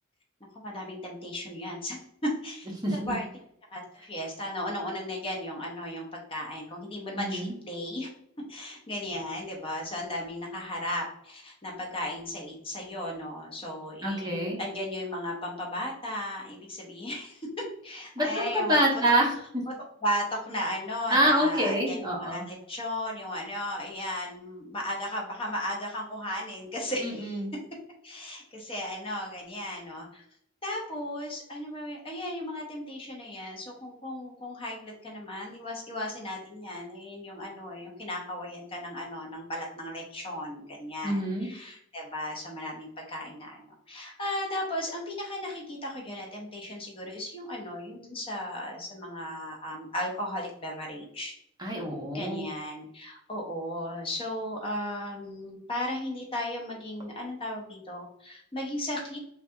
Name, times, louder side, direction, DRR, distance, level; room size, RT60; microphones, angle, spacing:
voice 1, 0.5-3.2 3.7-8.1 8.5-17.4 17.8-18.8 20.0-27.4 28.0-30.2 30.6-51.4 52.1-59.2, left 1 dB, 25° left, 0 dB, 0.6 m, -35 dB
voice 2, 2.8-3.2 7.1-7.5 14.0-14.6 18.2-19.6 21.1-22.4 27.0-27.5 41.0-41.5 51.6-52.4, right 1 dB, 20° right, -2 dB, 0.7 m, -26 dB
3.4 x 2.3 x 2.6 m, 0.71 s
head